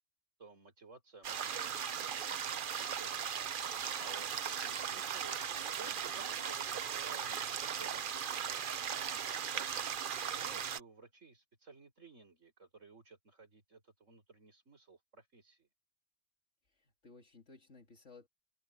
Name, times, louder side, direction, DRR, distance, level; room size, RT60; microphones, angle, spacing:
voice 1, 0.4-3.3 4.0-8.6 9.4-15.7, right 3 dB, 85° right, 5.5 m, -56 dB
sound 1, 1.2-10.8, right 8 dB, 50° right, 0.8 m, -38 dB
voice 2, 16.6-18.3, left 4 dB, 70° left, 2.6 m, -58 dB
omnidirectional pair, 1.3 m